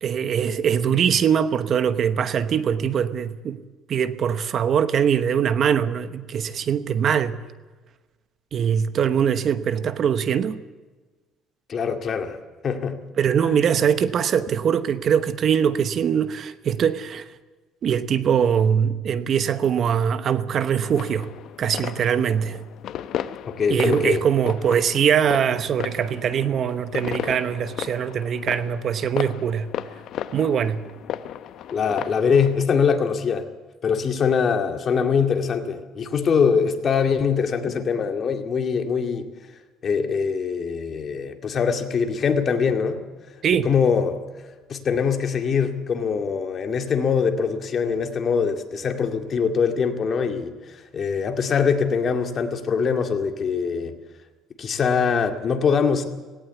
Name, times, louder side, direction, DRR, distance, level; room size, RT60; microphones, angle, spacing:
voice 1, 0.0-3.6 3.9-7.4 8.5-10.6 13.2-17.3 17.8-21.3 21.6-22.6 23.7-29.7 30.3-30.8 43.4-43.7, right 8 dB, 45° right, 1.0 m, -22 dB
voice 2, 11.7-12.4 12.6-13.0 13.4-13.6 23.5-24.2 31.7-33.5 33.8-39.3 39.8-43.0 43.3-44.2 44.7-54.0 54.6-56.0, left 6 dB, 40° left, 2.2 m, -23 dB
sound 1, 20.8-32.6, left 10 dB, 60° left, 0.8 m, -34 dB
18.5 x 17.5 x 8.3 m
cardioid pair, 130°, 0 cm